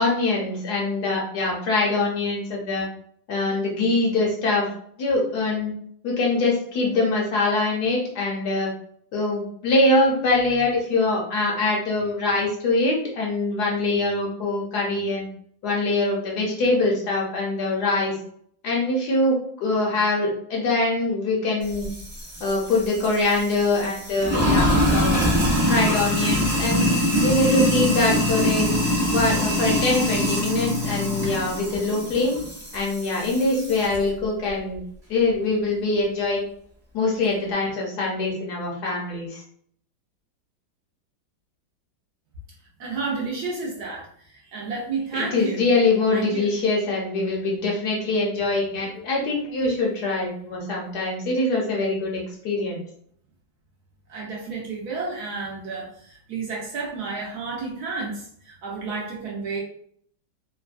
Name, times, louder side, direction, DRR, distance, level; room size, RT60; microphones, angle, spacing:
voice 1, 0.0-2.9 3.3-4.7 5.0-5.7 6.0-8.7 9.1-15.3 15.6-18.1 18.6-21.9 22.4-25.2 25.6-26.9 27.2-28.7 29.1-32.4 32.7-34.8 35.1-36.4 36.9-39.4 45.1-52.8, left 2 dB, 65° left, -2 dB, 1.2 m, -23 dB
Sink (filling or washing), 21.6-34.0, left 1 dB, 20° right, 0.7 m, -24 dB
voice 2, 42.8-45.6 46.1-46.5 54.1-59.6, right 4 dB, 70° right, -2 dB, 1.1 m, -31 dB
3.2 x 2.1 x 2.4 m, 0.64 s
omnidirectional pair, 2.0 m